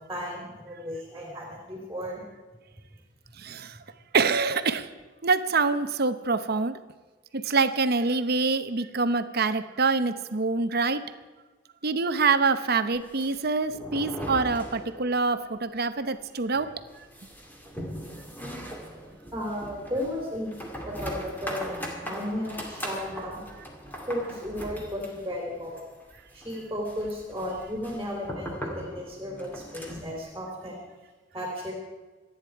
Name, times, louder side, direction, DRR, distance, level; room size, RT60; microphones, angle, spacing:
voice 1, 0.1-2.2 19.3-20.5 20.9-23.4 24.1-25.8 26.3-30.8 31.3-31.7, left 1 dB, 15° right, -1 dB, 3.4 m, -34 dB
voice 2, 3.4-3.8 4.1-4.9 5.2-6.7 7.3-11.0 11.8-16.7, right 4 dB, 55° right, 11 dB, 0.9 m, -25 dB
sound 1, 12.9-15.3 15.6-15.7 16.0-16.1 16.5-30.2, equal, 10° left, 2.5 m, -39 dB
27.0 x 9.7 x 4.7 m, 1.3 s
head